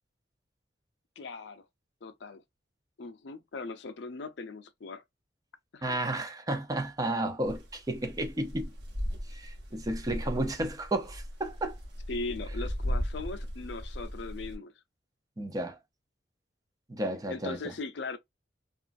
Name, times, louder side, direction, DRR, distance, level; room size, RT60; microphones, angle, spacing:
voice 1, 1.2-1.6 2.0-2.4 3.0-5.0 5.7-6.0 12.1-14.7 17.3-18.2, left 3 dB, 70° left, 0.5 m, -39 dB
voice 2, 5.8-8.7 9.3-11.7 15.4-15.8 16.9-17.6, right 1 dB, 20° right, 0.6 m, -32 dB
sound 1, 7.4-14.6, equal, 65° right, 1.0 m, -37 dB
2.9 x 2.4 x 2.4 m
head